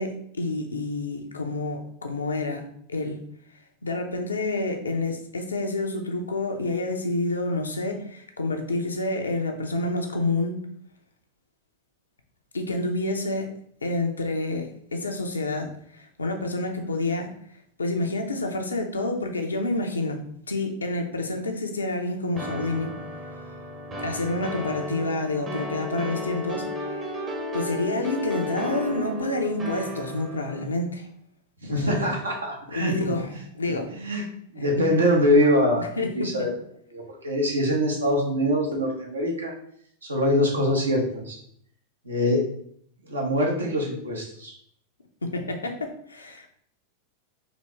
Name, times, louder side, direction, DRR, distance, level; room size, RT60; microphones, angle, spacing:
voice 1, 0.0-2.6 2.9-3.2 3.8-10.5 12.5-13.5 13.8-17.3 17.8-22.9 24.0-27.2 27.5-31.1 31.7-32.1 32.7-33.9 34.6-34.9 35.8-36.3 45.2-46.5, left 2 dB, 75° left, 4 dB, 0.6 m, -28 dB
sound 1, 22.4-30.6, equal, 25° right, 0.8 m, -34 dB
voice 2, 31.6-32.9 33.9-34.2 34.5-36.5 36.9-39.5 40.1-41.4 42.0-42.5 43.0-44.5, equal, 75° right, -1 dB, 1.1 m, -24 dB
4.0 x 2.9 x 3.3 m, 0.65 s
figure-of-eight pair, 90°, 0 cm